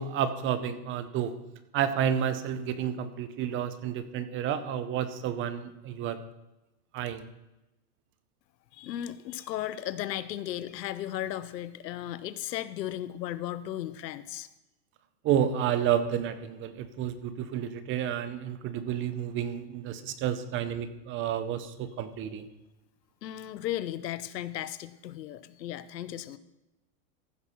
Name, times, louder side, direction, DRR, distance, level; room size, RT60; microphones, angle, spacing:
voice 1, 0.0-1.3 1.7-6.2 6.9-7.2 15.2-22.5, right 9 dB, 25° right, 12 dB, 0.7 m, -30 dB
voice 2, 8.7-14.5 23.2-26.4, left 12 dB, 85° left, 14 dB, 0.9 m, -35 dB
15.0 x 6.1 x 5.7 m, 0.95 s
supercardioid pair, 140°, 49 cm